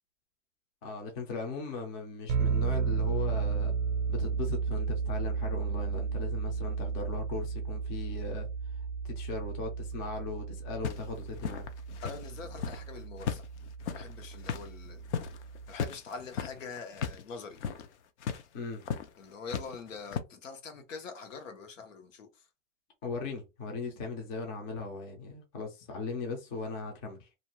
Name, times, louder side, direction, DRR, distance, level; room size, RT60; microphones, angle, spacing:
voice 1, 0.8-3.8 4.1-8.5 8.8-11.7 18.5-18.8 23.0-27.3, left 3 dB, 20° left, 0.5 m, -38 dB
sound 1, 2.3-15.7, right 5 dB, 35° right, 0.6 m, -34 dB
sound 2, 10.8-12.9 13.2-17.2 17.5-17.9 18.2-18.4 18.8-19.1 19.5-20.2, left 7 dB, 60° left, 0.6 m, -36 dB
voice 2, 12.0-13.4 13.9-15.0 15.7-17.6 19.2-22.4, left 5 dB, 75° left, 1.1 m, -44 dB
2.6 x 2.3 x 3.0 m
hypercardioid pair, 150°, 38 cm